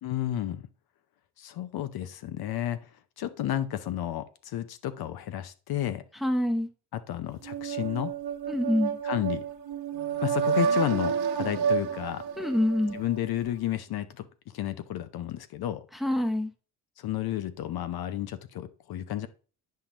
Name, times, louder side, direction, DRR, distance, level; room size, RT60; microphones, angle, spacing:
voice 1, 0.0-0.6 1.4-2.9 3.2-6.0 6.9-8.1 9.0-9.4 10.2-12.2 12.9-15.9 17.0-19.3, left 12 dB, 60° left, 0.7 m, -32 dB
voice 2, 6.2-6.7 8.5-9.0 12.4-13.0 16.0-16.5, left 1 dB, ahead, 0.8 m, -26 dB
sound 1, 7.4-13.2, right 7 dB, 65° right, 1.1 m, -30 dB
8.6 x 5.7 x 3.0 m
cardioid pair, 100°, 42 cm